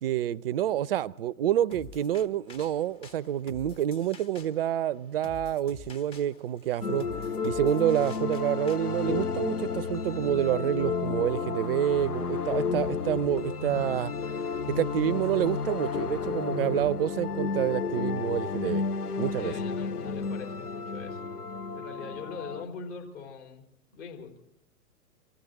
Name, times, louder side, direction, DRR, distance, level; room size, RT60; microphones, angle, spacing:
voice 1, 0.0-7.1 7.4-14.1 14.7-18.8 19.2-19.5, right 11 dB, 40° right, 0.5 m, -28 dB
sound 1, 1.7-8.8, left 5 dB, 15° left, 0.6 m, -49 dB
sound 2, 6.8-22.6, left 5 dB, 90° left, 0.7 m, -32 dB
voice 2, 19.4-21.2 21.7-24.4, left 5 dB, 50° left, 4.4 m, -42 dB
24.5 x 14.5 x 4.0 m
figure-of-eight pair, 110°, 44 cm